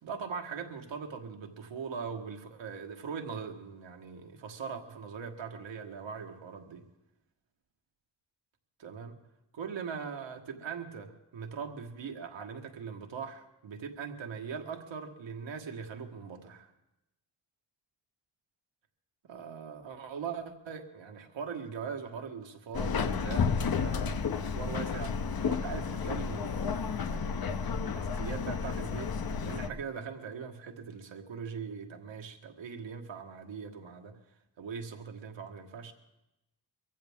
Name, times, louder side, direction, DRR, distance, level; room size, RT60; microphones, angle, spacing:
voice 1, 0.0-6.9 8.8-9.2 9.5-16.7 19.3-27.5 27.8-29.1 29.4-34.2 34.6-35.9, right 6 dB, 85° right, 4 dB, 1.5 m, -41 dB
Subway metro underground, 22.7-29.7, left 6 dB, 55° left, 0.8 m, -32 dB
23.0 x 15.0 x 3.6 m, 0.92 s
wide cardioid pair, 100°, 44 cm